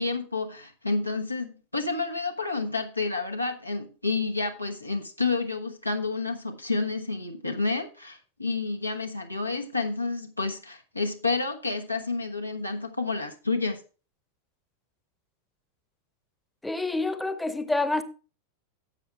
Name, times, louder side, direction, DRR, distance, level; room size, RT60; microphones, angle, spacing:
voice 1, 0.0-13.8, left 3 dB, 85° left, 1.2 m, -30 dB
voice 2, 16.6-18.0, left 2 dB, 5° left, 0.9 m, -27 dB
10.5 x 7.7 x 3.3 m
figure-of-eight pair, 90°, 0 cm